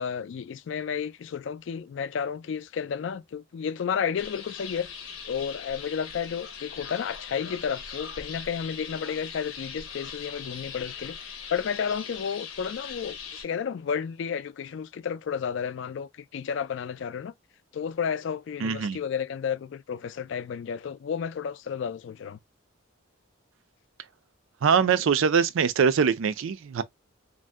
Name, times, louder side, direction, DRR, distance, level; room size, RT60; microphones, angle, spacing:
voice 1, 0.0-4.9 5.2-17.3 17.7-22.4, left 7 dB, 60° left, 0.3 m, -32 dB
sound 1, 4.2-13.5, left 6 dB, 80° left, 0.7 m, -40 dB
voice 2, 18.6-19.0 24.6-26.8, right 6 dB, 70° right, 0.4 m, -23 dB
2.6 x 2.0 x 3.3 m
head